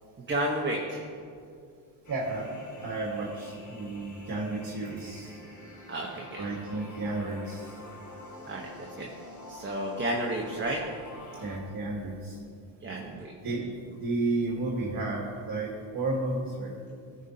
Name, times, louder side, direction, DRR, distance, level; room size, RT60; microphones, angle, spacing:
voice 1, 0.2-1.1 5.9-6.4 8.4-8.7 9.0-9.1 9.5-10.8 12.8-13.3, right 1 dB, 25° right, -1 dB, 1.0 m, -31 dB
sound 1, 2.0-11.6, left 1 dB, 35° left, 1.7 m, -47 dB
voice 2, 2.1-2.5 2.8-5.4 6.4-7.8 11.4-12.4 13.4-13.7 14.0-16.7, right 2 dB, 45° right, -2 dB, 1.6 m, -32 dB
15.5 x 5.2 x 2.8 m, 2.4 s
supercardioid pair, 65°, 50 cm